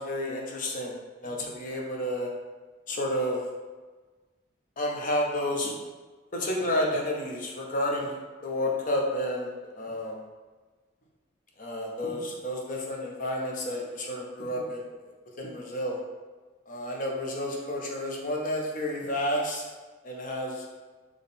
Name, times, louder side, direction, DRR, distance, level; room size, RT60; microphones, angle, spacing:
voice 1, 0.0-2.3 2.9-3.4 4.8-5.7 6.3-8.2 8.4-9.5 9.8-10.2 11.6-14.9 15.4-16.0 16.7-19.7 20.0-20.6, left 1 dB, 45° left, -1 dB, 0.7 m, -30 dB
4.1 x 3.0 x 3.6 m, 1.3 s
head